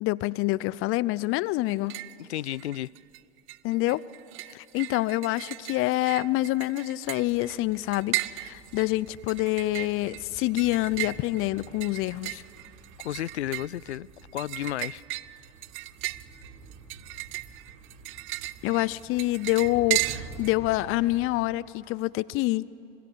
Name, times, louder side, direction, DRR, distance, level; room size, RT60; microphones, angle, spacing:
voice 1, 0.0-2.0 3.6-4.0 4.5-12.4 18.6-22.6, left 18 dB, 40° left, 21 dB, 0.6 m, -27 dB
sound 1, 1.7-2.2 2.5-3.2 3.5-20.5, right 19 dB, 40° right, 0.6 m, -36 dB
voice 2, 2.2-2.9 13.0-15.0, left 13 dB, 80° left, 25 dB, 0.5 m, -33 dB
sound 2, 7.0-21.4, right 4 dB, 55° right, 5.0 m, -49 dB
26.5 x 23.5 x 6.9 m, 3.0 s
hypercardioid pair, 85°, 33 cm